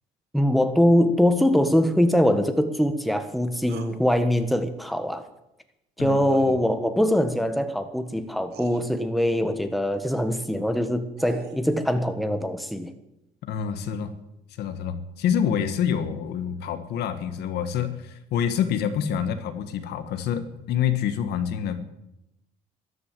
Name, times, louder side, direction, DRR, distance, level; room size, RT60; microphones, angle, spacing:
voice 1, 0.3-5.2 6.0-12.9, equal, ahead, 1.5 m, -22 dB
sound 1, 3.7-4.0 6.3-6.5 7.9-8.0 8.5-8.8 10.8-11.7, right 7 dB, 70° right, 1.7 m, -43 dB
voice 2, 6.0-6.5 13.5-14.1 14.6-21.8, left 8 dB, 75° left, 1.6 m, -27 dB
13.5 x 11.0 x 7.7 m
cardioid pair, 110°, 17 cm